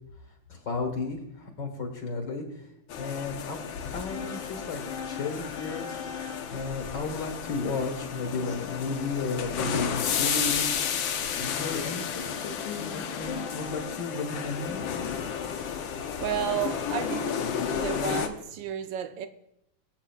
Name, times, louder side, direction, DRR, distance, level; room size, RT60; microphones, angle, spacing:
voice 1, 0.5-2.4 3.0-3.6 3.9-4.8 5.1-5.9 6.5-10.8 11.3-14.8, left 3 dB, 60° left, 2.2 m, -33 dB
sound 1, 2.9-18.3, left 7 dB, 75° left, 1.6 m, -32 dB
voice 2, 16.2-17.4 17.7-19.3, right 9 dB, 75° right, 1.3 m, -32 dB
22.5 x 8.9 x 2.4 m
omnidirectional pair, 2.2 m